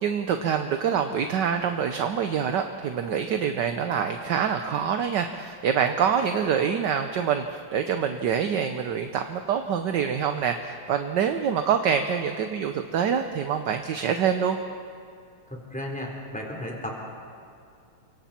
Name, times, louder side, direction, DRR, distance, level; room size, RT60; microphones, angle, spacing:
voice 1, 0.0-14.6, right 7 dB, 65° right, 6 dB, 1.3 m, -26 dB
voice 2, 15.5-16.9, left 1 dB, 5° left, -1 dB, 3.8 m, -34 dB
29.5 x 24.5 x 4.4 m, 2.3 s
omnidirectional pair, 2.4 m